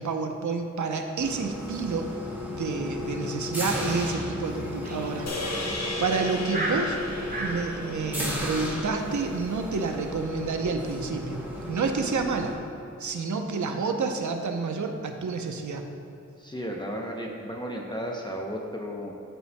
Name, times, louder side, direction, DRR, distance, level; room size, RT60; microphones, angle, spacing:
voice 1, 0.0-2.1 2.5-7.0 7.4-12.6 13.0-15.8, right 4 dB, 70° right, 4 dB, 0.7 m, -29 dB
sound 1, 1.2-12.6, left 1 dB, 5° right, 1.4 m, -35 dB
sound 2, 4.8-7.6, right 1 dB, 30° right, 1.2 m, -34 dB
sound 3, 5.3-9.7, left 2 dB, 60° left, 1.0 m, -36 dB
voice 2, 16.4-19.1, equal, 15° left, -1 dB, 0.6 m, -34 dB
13.0 x 5.3 x 2.2 m, 2.7 s
wide cardioid pair, 90°, 31 cm